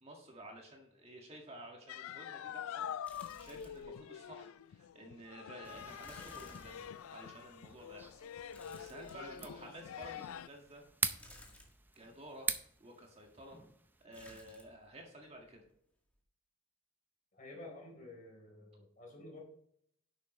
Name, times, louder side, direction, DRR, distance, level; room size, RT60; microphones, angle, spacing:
voice 1, 0.0-8.1 8.4-10.8 12.0-12.5 12.8-13.6 14.0-15.6, right 1 dB, 30° right, 1 dB, 1.8 m, -52 dB
sound 1, 1.9-10.5, left 9 dB, 80° left, 0.3 m, -46 dB
sound 2, 3.0-4.0 4.3-4.4 6.0-7.3 8.5-9.6 11.2-12.0 14.1-14.8 15.1-15.7 16.0-16.2, left 1 dB, 5° left, 1.9 m, -58 dB
sound 3, 5.6-14.1, right 3 dB, 10° right, 0.5 m, -44 dB
voice 2, 17.3-19.4, left 2 dB, 40° left, 0 dB, 3.8 m, -51 dB
11.0 x 8.2 x 3.1 m, 0.69 s
head